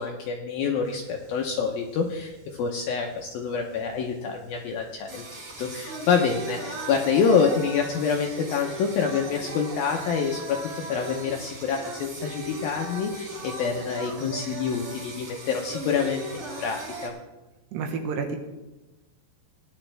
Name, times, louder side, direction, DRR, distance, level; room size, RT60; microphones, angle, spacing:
voice 1, 0.0-5.2 5.6-10.6 10.9-17.1, left 6 dB, 75° left, 2 dB, 2.2 m, -27 dB
Singing, 0.9-17.1, right 2 dB, 40° right, 2.5 m, -38 dB
voice 2, 17.7-18.4, right 5 dB, 75° right, 4 dB, 3.3 m, -29 dB
18.0 x 10.5 x 3.4 m, 1.1 s
omnidirectional pair, 5.1 m